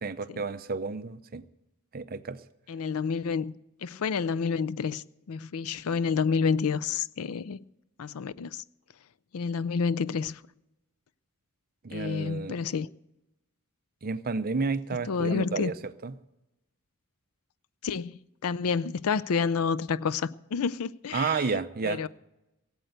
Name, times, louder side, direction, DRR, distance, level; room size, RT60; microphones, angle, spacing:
voice 1, 0.0-1.4 1.9-2.4 11.8-12.6 14.0-15.8 16.0-16.1 21.1-22.1, right 4 dB, 40° right, 0.6 m, -31 dB
voice 2, 2.7-7.6 8.0-8.6 9.3-10.4 11.9-12.9 15.1-15.7 17.8-22.1, left 5 dB, 75° left, 0.5 m, -29 dB
17.5 x 7.9 x 8.0 m
head